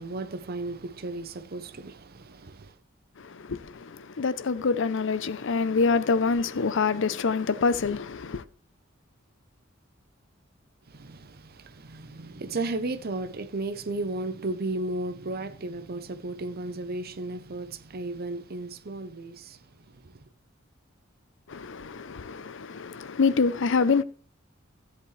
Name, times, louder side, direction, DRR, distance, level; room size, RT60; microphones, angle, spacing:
voice 1, 0.0-2.8 10.9-20.3, right 2 dB, 50° right, 0.8 m, -34 dB
voice 2, 3.2-8.4 21.5-24.0, left 4 dB, 65° left, 0.6 m, -26 dB
15.0 x 8.0 x 3.2 m
head